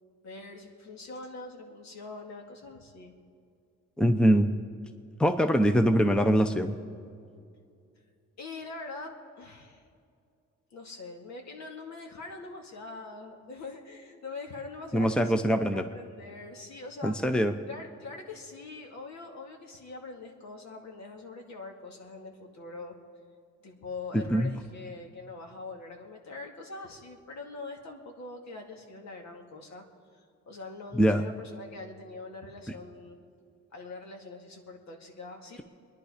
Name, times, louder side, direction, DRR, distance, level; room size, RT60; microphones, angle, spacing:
voice 1, 0.2-3.1 8.4-9.8 10.7-17.1 17.7-22.9 23.6-29.8 30.1-33.2 33.7-35.6, left 3 dB, 65° left, 2 dB, 2.3 m, -43 dB
voice 2, 4.0-4.5 5.2-6.7 14.9-15.8 17.0-17.5 24.1-24.5 30.9-31.2, equal, 5° left, 8 dB, 0.7 m, -23 dB
24.0 x 10.5 x 5.0 m, 2.4 s
cardioid pair, 90°, 30 cm